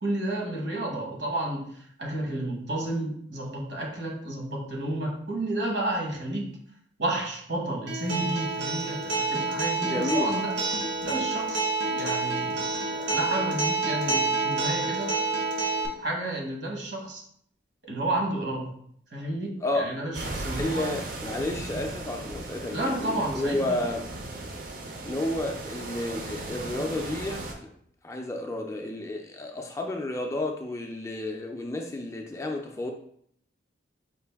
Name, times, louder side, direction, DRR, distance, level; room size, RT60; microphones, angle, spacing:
voice 1, 0.0-6.5 7.0-10.5 11.0-15.1 16.0-17.2 17.8-18.7 19.1-20.9 22.7-23.8, right 1 dB, 70° right, -1 dB, 1.2 m, -31 dB
Acoustic guitar, 7.9-15.9, right 3 dB, 85° right, 0.9 m, -28 dB
voice 2, 9.8-10.4 19.6-19.9 20.3-24.0 25.0-27.4 28.0-32.9, left 1 dB, 15° left, 2 dB, 0.3 m, -31 dB
sound 1, 20.1-27.5, right 2 dB, 45° right, 0.5 m, -37 dB
5.2 x 2.5 x 3.4 m, 0.66 s
head